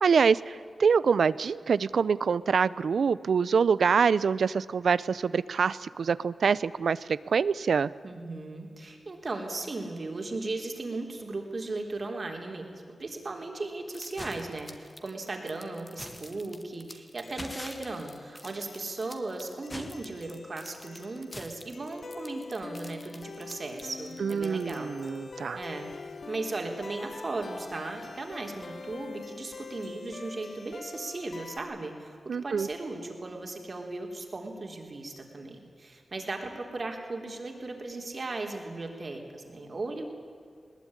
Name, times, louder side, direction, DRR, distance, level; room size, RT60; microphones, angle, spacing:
voice 1, 0.0-7.9 24.2-25.6 32.3-32.7, right 6 dB, 85° right, 19 dB, 0.6 m, -25 dB
voice 2, 8.0-24.9 25.5-40.1, right 2 dB, 45° right, 3 dB, 3.7 m, -37 dB
sound 1, 13.9-25.2, left 1 dB, 20° left, 1.8 m, -45 dB
sound 2, 17.2-31.6, left 4 dB, 55° left, 1.2 m, -45 dB
20.5 x 20.5 x 9.9 m, 2.3 s
wide cardioid pair, 130°, 0 cm